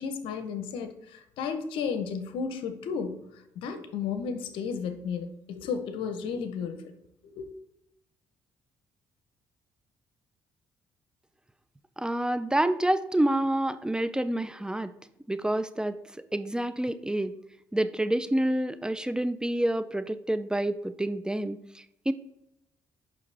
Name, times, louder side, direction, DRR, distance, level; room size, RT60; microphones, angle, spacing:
voice 1, 0.0-6.9 7.2-7.5, left 6 dB, 85° left, 8 dB, 0.8 m, -33 dB
voice 2, 12.0-14.9 15.3-16.0 16.3-17.3 17.7-22.1, right 1 dB, 10° right, 12 dB, 0.4 m, -28 dB
7.1 x 5.8 x 3.4 m, 0.85 s
supercardioid pair, 75°, 9 cm